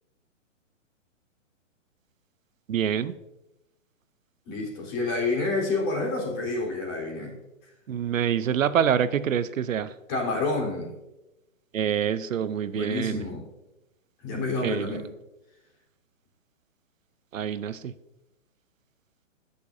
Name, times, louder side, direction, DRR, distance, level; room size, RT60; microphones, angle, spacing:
voice 1, 2.7-3.1 7.9-9.9 11.7-13.2 14.6-15.0 17.3-17.9, right 8 dB, 90° right, 15 dB, 0.7 m, -26 dB
voice 2, 4.5-7.4 10.1-10.9 12.7-13.4 14.2-15.1, left 3 dB, 35° left, -2 dB, 3.8 m, -28 dB
18.0 x 6.8 x 2.6 m, 0.97 s
hypercardioid pair, 150°, 39 cm